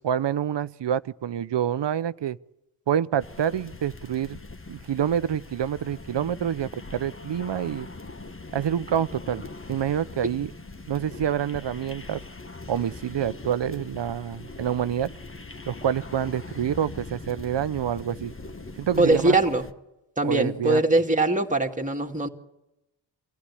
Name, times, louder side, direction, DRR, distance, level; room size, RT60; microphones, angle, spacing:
voice 1, 0.0-2.4 2.9-4.4 4.7-7.9 8.5-9.4 9.7-10.5 10.9-12.2 12.7-15.1 15.7-18.3 18.8-19.3 20.2-20.8, right 9 dB, 60° right, 0.8 m, -27 dB
sound 1, 3.2-19.7, left 3 dB, 25° left, 1.4 m, -41 dB
voice 2, 19.0-19.6 20.2-22.3, right 2 dB, 15° right, 2.4 m, -22 dB
25.0 x 15.5 x 9.9 m
cardioid pair, 50°, 47 cm